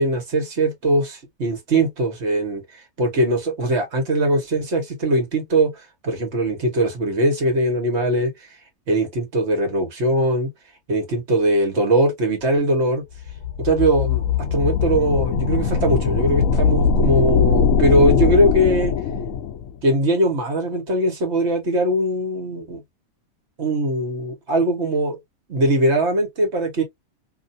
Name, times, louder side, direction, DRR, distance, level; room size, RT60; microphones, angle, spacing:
voice 1, 0.0-8.5 8.9-10.5 10.9-13.0 13.6-14.2 14.5-18.9 19.8-22.8 23.6-25.2 25.5-26.8, right 1 dB, 55° right, 1.5 m, -21 dB
sound 1, 13.2-19.7, left 6 dB, 75° left, 1.0 m, -20 dB
2.9 x 2.6 x 2.6 m
omnidirectional pair, 1.4 m